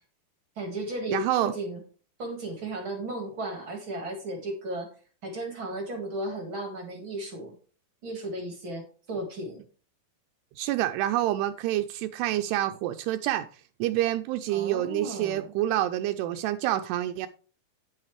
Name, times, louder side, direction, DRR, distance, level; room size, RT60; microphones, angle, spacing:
voice 1, 0.5-1.8 2.2-4.9 5.2-7.5 8.0-8.8 9.1-9.6 14.5-15.5, right 1 dB, 45° right, 1.7 m, -35 dB
voice 2, 1.1-1.5 10.6-13.5 13.8-17.3, right 13 dB, 80° right, 2.6 m, -27 dB
9.5 x 8.8 x 3.2 m
omnidirectional pair, 4.9 m